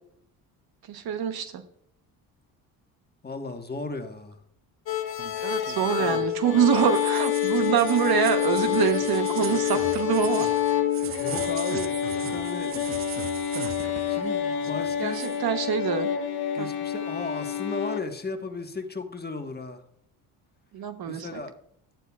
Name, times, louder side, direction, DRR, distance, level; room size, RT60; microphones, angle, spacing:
voice 1, 0.9-1.6 5.4-10.5 12.3-12.4 15.0-16.1 16.6-16.7 20.7-21.4, right 9 dB, 55° right, 1.0 m, -25 dB
voice 2, 3.2-4.4 10.9-12.7 14.1-15.2 16.5-19.8 21.1-21.5, left 3 dB, 20° left, 1.4 m, -35 dB
sound 1, 4.9-18.0, left 10 dB, 55° left, 1.4 m, -27 dB
sound 2, 5.2-14.3 14.5-15.4, right 9 dB, 30° right, 0.4 m, -39 dB
11.5 x 8.9 x 2.4 m
hypercardioid pair, 60°, 44 cm